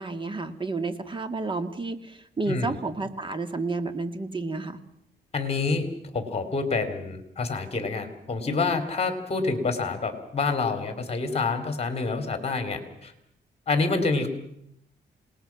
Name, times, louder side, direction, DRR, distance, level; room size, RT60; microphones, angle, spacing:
voice 1, 0.0-4.8, right 3 dB, 25° right, 9 dB, 1.9 m, -31 dB
voice 2, 5.3-5.9 6.1-13.1 13.7-14.3, left 4 dB, 35° left, 8 dB, 3.2 m, -27 dB
27.5 x 20.0 x 5.9 m, 0.75 s
cardioid pair, 115°, 18 cm